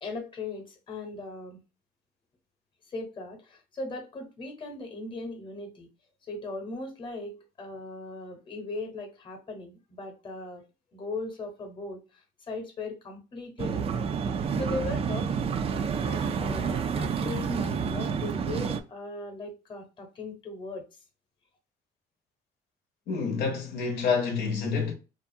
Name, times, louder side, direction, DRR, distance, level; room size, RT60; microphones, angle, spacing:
voice 1, 0.0-1.6 2.9-5.9 6.3-10.6 10.9-14.1 14.5-20.9, left 2 dB, 30° left, 0.9 m, -38 dB
sound 1, 13.6-18.8, right 6 dB, 35° right, 0.3 m, -29 dB
voice 2, 23.1-24.9, left 5 dB, 80° left, 0.7 m, -28 dB
2.5 x 2.3 x 2.5 m
cardioid pair, 110°, 17 cm